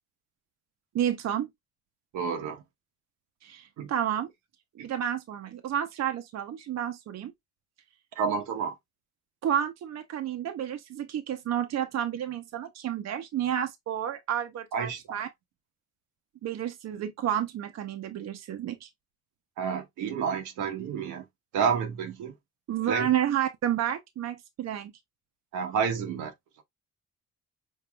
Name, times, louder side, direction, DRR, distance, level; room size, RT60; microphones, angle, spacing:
voice 1, 0.9-1.5 3.4-4.3 4.8-7.3 9.4-15.3 16.4-18.9 22.7-24.9, right 10 dB, 60° right, 0.7 m, -30 dB
voice 2, 2.1-2.6 3.8-3.9 4.8-4.9 8.2-8.8 14.7-15.0 19.6-21.2 21.5-22.3 22.8-23.1 25.5-26.3, right 6 dB, 90° right, 1.1 m, -30 dB
5.4 x 2.6 x 2.3 m
cardioid pair, 90°, 30 cm